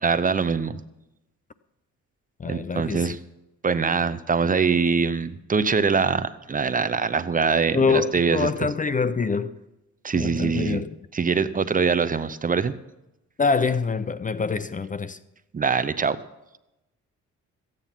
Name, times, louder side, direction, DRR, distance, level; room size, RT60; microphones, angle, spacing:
voice 1, 0.0-0.8 2.5-3.2 3.6-8.5 10.0-10.8 11.1-12.8 15.5-16.2, right 5 dB, 25° right, 0.7 m, -23 dB
voice 2, 2.4-3.2 7.7-9.6 10.1-10.9 13.4-15.2, left 5 dB, 25° left, 0.6 m, -25 dB
15.0 x 9.2 x 5.8 m
cardioid pair, 90°, 30 cm